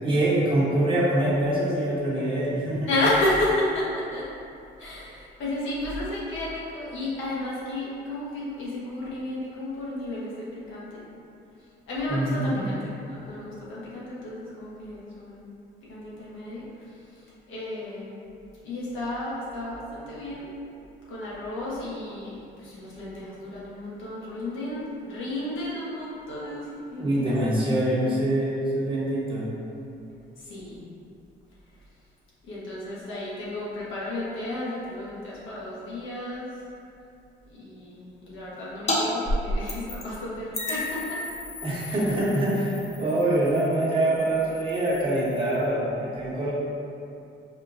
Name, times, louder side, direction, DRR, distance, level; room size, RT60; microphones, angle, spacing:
voice 1, 0.0-2.9 12.1-12.6 27.0-29.5 41.6-46.5, right 1 dB, 25° right, -8 dB, 1.1 m, -24 dB
voice 2, 2.8-4.3 4.8-11.0 11.9-15.5 15.8-16.9 17.1-18.2 18.6-20.5 21.1-27.4 30.4-30.8 32.4-36.6 37.5-41.2 41.9-42.0, left 1 dB, 80° left, -8 dB, 1.1 m, -32 dB
sound 1, 38.9-39.0 39.3-40.2 40.5-45.6, left 1 dB, 35° left, 0.6 m, -33 dB
5.0 x 2.4 x 2.6 m, 2.6 s
cardioid pair, 90°, 20 cm